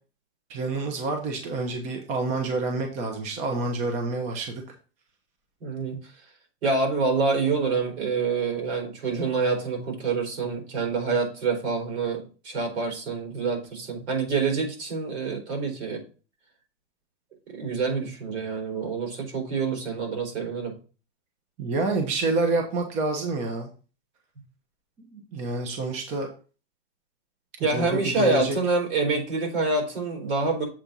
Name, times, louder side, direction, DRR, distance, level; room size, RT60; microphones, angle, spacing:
voice 1, 0.5-4.6 21.6-23.7 25.1-26.3 27.7-28.6, right 3 dB, 20° right, 3 dB, 0.9 m, -28 dB
voice 2, 5.6-6.0 6.6-16.0 17.5-20.7 27.6-30.6, right 4 dB, 80° right, 1 dB, 4.2 m, -26 dB
7.4 x 4.3 x 5.3 m, 0.36 s
supercardioid pair, 175°, 33 cm